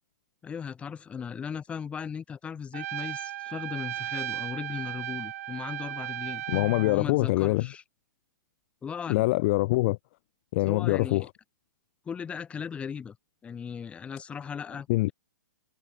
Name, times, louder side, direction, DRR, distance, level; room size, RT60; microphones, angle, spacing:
voice 1, 0.4-6.4 6.8-7.8 8.8-9.3 10.7-11.3 12.1-13.2 13.4-15.1, left 7 dB, 10° left, 2.8 m, -37 dB
Trumpet, 2.7-7.0, right 14 dB, 45° right, 1.4 m, -36 dB
voice 2, 6.5-7.7 9.1-10.0 10.5-11.2 14.9-15.1, left 21 dB, 35° left, 1.5 m, -24 dB
hypercardioid pair, 160°, 11 cm